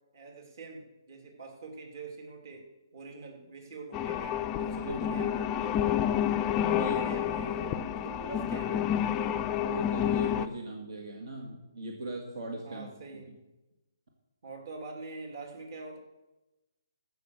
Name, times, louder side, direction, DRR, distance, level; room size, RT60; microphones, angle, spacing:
voice 1, 0.1-2.7 2.9-5.6 5.9-6.4 6.7-9.3 12.6-13.3 14.4-16.0, right 3 dB, 50° right, 2 dB, 2.9 m, -44 dB
sound 1, 3.9-10.5, left 10 dB, 15° left, 0.4 m, -29 dB
voice 2, 9.6-12.9, right 2 dB, 65° right, 1 dB, 2.1 m, -38 dB
15.0 x 6.1 x 6.6 m, 1.1 s
hypercardioid pair, 160°, 2 cm